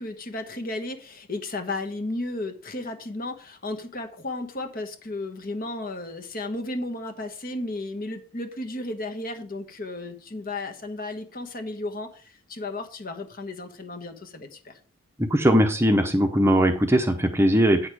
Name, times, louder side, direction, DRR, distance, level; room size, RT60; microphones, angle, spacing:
voice 1, 0.0-14.8, left 2 dB, 40° left, 6 dB, 1.2 m, -34 dB
voice 2, 15.3-17.9, equal, 10° right, 5 dB, 0.8 m, -20 dB
9.0 x 6.5 x 4.8 m, 0.38 s
head